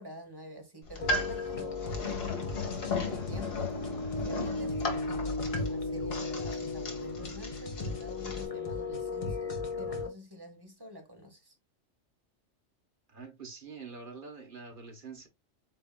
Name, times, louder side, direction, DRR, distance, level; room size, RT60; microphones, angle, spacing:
voice 1, 0.0-3.8 4.2-11.5, equal, 20° right, 1.2 m, -47 dB
sound 1, 0.8-8.5, left 3 dB, 55° left, 1.4 m, -36 dB
sound 2, 1.0-10.1, left 3 dB, 30° left, 0.9 m, -36 dB
voice 2, 13.1-15.3, right 4 dB, 45° right, 1.3 m, -45 dB
7.9 x 2.7 x 2.3 m
omnidirectional pair, 1.3 m